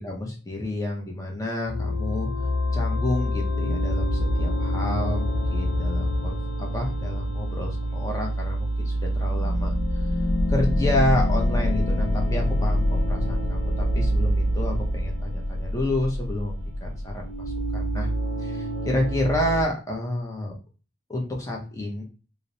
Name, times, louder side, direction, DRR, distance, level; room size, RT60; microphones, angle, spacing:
voice 1, 0.0-2.3 2.7-9.7 10.5-18.1 18.4-20.5 21.1-22.0, left 1 dB, 15° left, 0 dB, 0.5 m, -29 dB
sound 1, 1.7-19.6, equal, 85° left, 0.5 m, -25 dB
2.8 x 2.0 x 2.6 m, 0.36 s
head